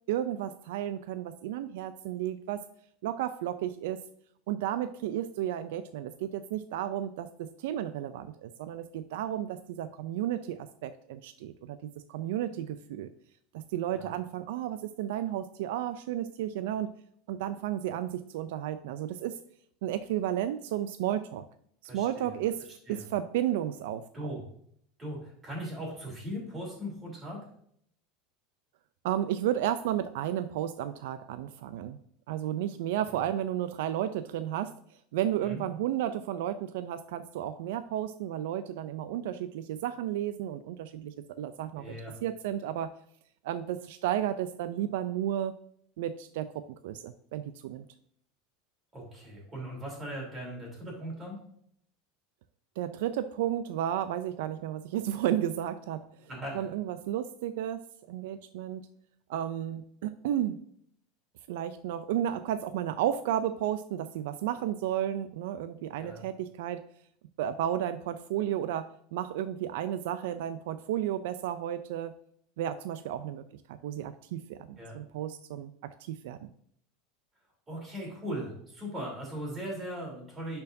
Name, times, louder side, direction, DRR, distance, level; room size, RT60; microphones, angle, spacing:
voice 1, 0.1-2.7 3.0-4.0 4.5-13.1 13.5-16.9 17.3-19.4 19.8-21.5 21.9-24.3 29.0-32.0 32.3-34.7 35.1-42.9 43.4-45.5 46.0-47.9 52.8-56.0 56.5-58.9 59.3-60.6 61.5-66.8 67.4-72.1 72.6-73.4 73.7-76.5, right 11 dB, 75° right, 11 dB, 0.3 m, -33 dB
voice 2, 21.9-22.3 22.9-23.0 24.1-24.4 25.0-27.4 35.4-35.6 41.8-42.1 48.9-51.4 56.2-56.6 66.0-66.3 74.8-74.9 77.7-80.6, equal, 15° right, -3 dB, 3.0 m, -39 dB
10.5 x 4.5 x 2.6 m, 0.66 s
supercardioid pair, 165°, 0 cm